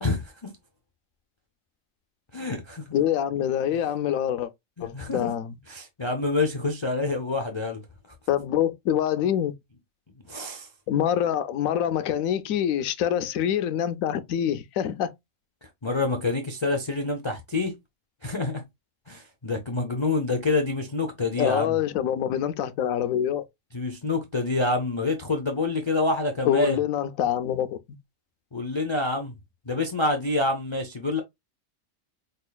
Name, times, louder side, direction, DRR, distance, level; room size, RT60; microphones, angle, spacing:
voice 1, 0.0-0.5 2.3-3.0 4.9-5.3 5.7-7.8 10.3-10.7 15.8-17.8 18.2-18.6 19.1-21.8 23.7-26.8 28.5-29.4 29.7-31.2, left 2 dB, 40° left, 0.4 m, -27 dB
voice 2, 2.9-4.5 4.8-5.5 8.3-9.5 10.9-15.1 21.4-23.4 26.4-27.8, left 10 dB, 85° left, 1.0 m, -25 dB
5.3 x 2.4 x 2.2 m
omnidirectional pair, 1.4 m